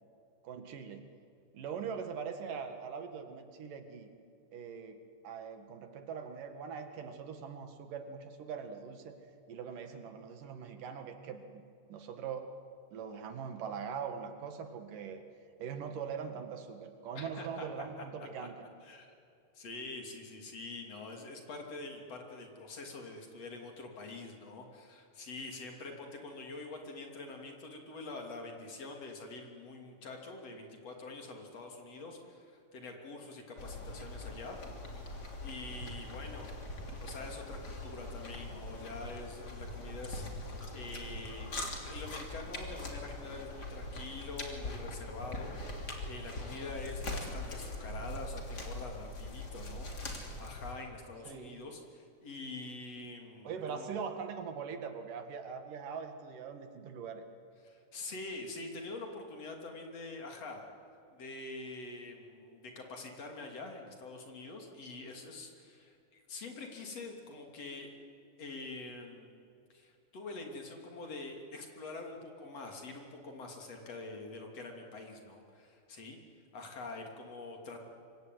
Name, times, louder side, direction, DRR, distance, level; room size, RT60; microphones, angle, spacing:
voice 1, 0.4-1.0 1.5-4.1 4.5-5.0 5.2-9.1 9.5-11.6 11.9-12.5 12.9-15.2 15.6-18.6 51.3-51.5 53.4-57.2, right 6 dB, 80° right, 7 dB, 3.5 m, -42 dB
voice 2, 17.2-17.7 18.0-18.1 18.8-19.1 19.5-34.6 35.1-36.6 37.0-53.9 57.6-60.7 61.1-67.9 68.4-69.4 69.7-76.2 76.5-77.9, left 3 dB, 50° left, 2 dB, 4.0 m, -45 dB
sound 1, 33.6-50.7, left 2 dB, 30° left, 3.4 m, -42 dB
26.0 x 24.0 x 9.4 m, 2.5 s
omnidirectional pair, 3.7 m